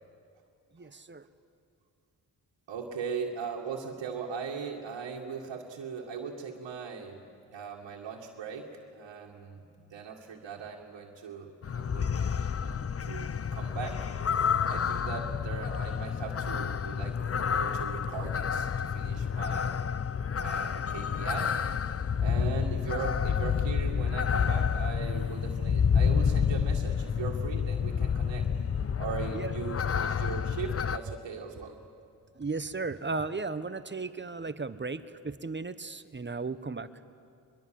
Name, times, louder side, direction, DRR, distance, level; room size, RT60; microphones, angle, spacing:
voice 1, 0.7-1.3 29.3-29.5 32.3-36.9, right 3 dB, 25° right, 13 dB, 1.1 m, -35 dB
voice 2, 2.7-7.2 7.5-12.2 12.6-14.1 14.7-19.8 20.3-21.5 22.2-28.5 29.0-31.8, right 5 dB, 75° right, -3 dB, 2.2 m, -39 dB
sound 1, 11.6-31.0, left 7 dB, 35° left, 0.7 m, -29 dB
23.0 x 22.5 x 7.7 m, 2.4 s
supercardioid pair, 50°, 44 cm